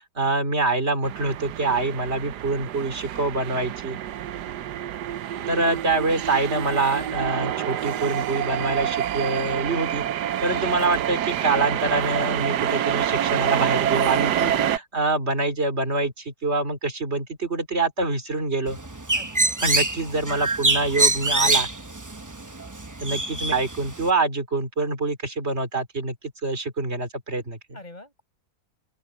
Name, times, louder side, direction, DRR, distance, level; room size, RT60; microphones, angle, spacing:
voice 1, 0.1-4.0 5.5-10.0 10.4-18.8 19.6-21.7 23.0-26.2 26.4-27.8, right 3 dB, 40° right, 3.3 m, -25 dB
sound 1, 1.0-14.8, right 10 dB, 90° right, 1.4 m, -27 dB
voice 2, 5.4-5.8 19.1-19.9 27.7-28.2, left 1 dB, 25° left, 7.0 m, -45 dB
Bird, 18.7-24.1, right 2 dB, 15° right, 0.7 m, -25 dB
open air
omnidirectional pair, 1.7 m